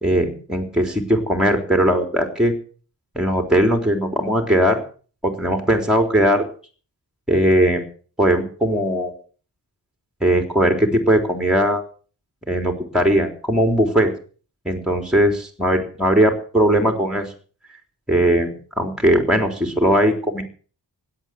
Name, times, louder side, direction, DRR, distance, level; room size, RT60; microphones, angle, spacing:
voice 1, 0.0-2.5 3.2-4.8 5.2-6.4 7.3-7.9 8.2-9.1 10.2-11.8 12.5-14.1 14.7-17.3 18.1-20.4, equal, ahead, 6 dB, 3.8 m, -19 dB
17.0 x 10.5 x 7.7 m, 0.42 s
wide cardioid pair, 90°, 40 cm